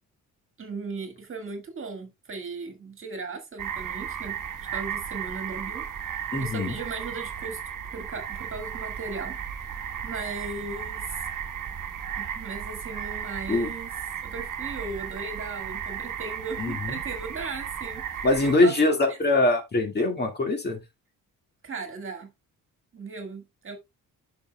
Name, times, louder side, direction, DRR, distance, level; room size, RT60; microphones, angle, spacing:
voice 1, 0.6-7.6 7.9-9.4 9.6-9.7 10.0-11.3 12.2-13.9 14.2-19.2 21.6-22.3 22.9-23.8, right 4 dB, 35° right, 1.9 m, -37 dB
sound 1, 3.6-18.5, right 8 dB, 55° right, 1.3 m, -35 dB
voice 2, 6.3-6.8 13.5-13.7 16.6-17.0 18.2-20.8, left 2 dB, 30° left, 2.0 m, -23 dB
10.0 x 6.3 x 2.3 m
cardioid pair, 145°, 36 cm